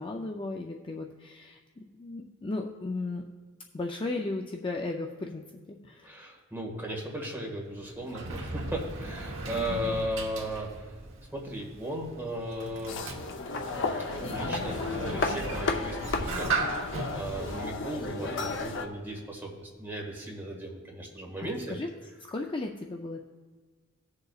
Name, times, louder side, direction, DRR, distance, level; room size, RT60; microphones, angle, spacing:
voice 1, 0.0-1.6 1.9-3.2 3.7-5.4 5.7-6.1 9.7-10.1 21.4-21.9 22.3-23.2, left 2 dB, 25° left, 2 dB, 0.5 m, -35 dB
voice 2, 6.0-10.9 11.3-13.0 14.1-16.8 17.1-21.8, equal, 10° right, -2 dB, 1.7 m, -36 dB
Sliding door, 7.6-19.0, right 3 dB, 65° right, 1.1 m, -38 dB
sound 1, 12.9-18.9, left 3 dB, 60° left, 0.7 m, -33 dB
18.0 x 6.7 x 2.4 m, 1.4 s
head